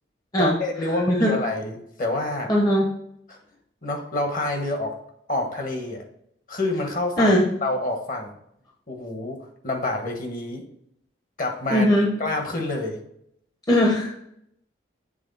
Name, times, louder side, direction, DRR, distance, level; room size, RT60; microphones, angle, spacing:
voice 1, 0.4-2.5 3.3-3.4 3.8-5.0 5.3-6.0 6.5-7.3 7.6-8.3 8.9-9.4 9.6-10.6 11.4-11.9 12.2-13.0, left 2 dB, 45° left, 3 dB, 1.2 m, -27 dB
voice 2, 2.5-2.9 7.2-7.4 11.7-12.1 13.7-14.1, equal, 20° left, -1 dB, 0.8 m, -19 dB
7.8 x 3.5 x 4.0 m, 0.73 s
head